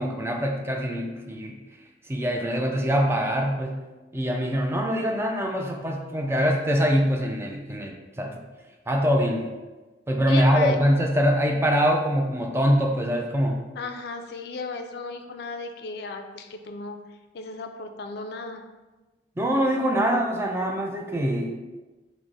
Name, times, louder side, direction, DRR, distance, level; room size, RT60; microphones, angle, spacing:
voice 1, 0.0-1.6 2.1-3.8 4.1-8.4 8.9-9.5 10.1-13.7 19.4-21.5, equal, 15° right, 1 dB, 0.4 m, -24 dB
voice 2, 10.3-10.8 13.8-17.0 17.3-18.6, left 4 dB, 65° left, 6 dB, 0.4 m, -35 dB
4.6 x 2.1 x 3.8 m, 1.2 s
head